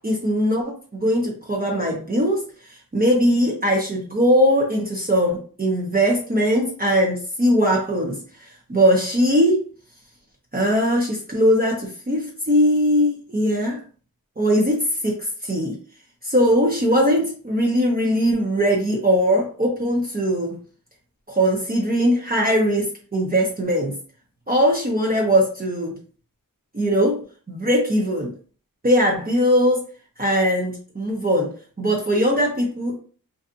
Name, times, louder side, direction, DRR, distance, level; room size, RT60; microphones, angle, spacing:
voice 1, 0.0-2.4 2.9-8.2 8.7-9.6 10.5-13.8 14.4-15.7 16.2-20.5 21.3-24.0 24.5-26.0 26.7-27.2 27.5-28.3 28.8-29.8 30.2-31.5 31.8-33.0, equal, 25° right, -2 dB, 0.7 m, -20 dB
2.6 x 2.4 x 2.4 m, 0.40 s
wide cardioid pair, 70°, 35 cm